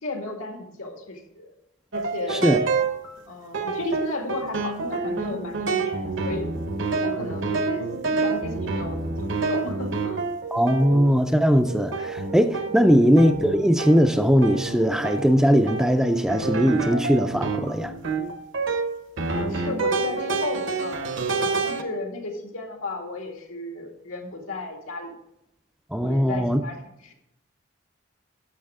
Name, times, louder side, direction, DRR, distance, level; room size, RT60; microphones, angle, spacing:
voice 1, 0.0-1.5 1.9-2.5 3.3-6.5 7.0-10.2 12.7-13.0 19.3-25.1 26.0-26.8 27.0-27.1, left 2 dB, 85° left, 2.1 m, -34 dB
sound 1, 1.9-3.1 3.5-11.3 11.7-21.8, right 4 dB, 65° right, 0.9 m, -28 dB
voice 2, 10.5-17.9 25.9-26.6, equal, 5° right, 0.4 m, -20 dB
11.5 x 7.0 x 3.6 m
head